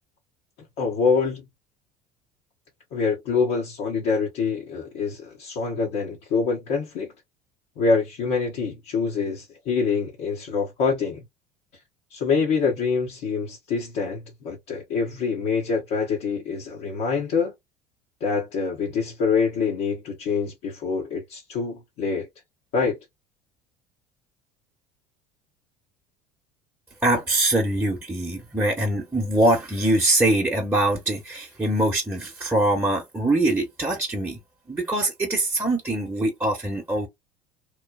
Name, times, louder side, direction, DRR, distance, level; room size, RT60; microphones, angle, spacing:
voice 1, 0.8-1.4 2.9-7.1 7.8-11.2 12.1-17.5 18.2-22.3 22.7-23.0, left 5 dB, 60° left, 1.0 m, -25 dB
voice 2, 27.0-34.4 34.7-37.1, right 1 dB, 10° right, 1.0 m, -23 dB
3.1 x 2.2 x 2.3 m
hypercardioid pair, 65°, 20 cm